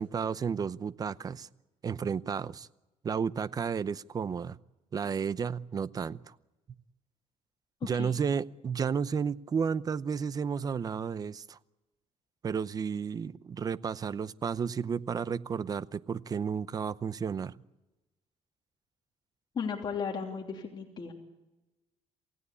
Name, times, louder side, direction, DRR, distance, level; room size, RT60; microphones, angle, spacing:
voice 1, 0.0-1.5 1.8-2.7 3.0-4.6 4.9-6.3 7.8-11.6 12.4-17.5, right 6 dB, 30° right, 17 dB, 0.7 m, -32 dB
voice 2, 19.5-21.1, left 6 dB, 35° left, 1 dB, 3.1 m, -35 dB
28.0 x 16.5 x 8.4 m, 1.1 s
cardioid pair, 145°, 13 cm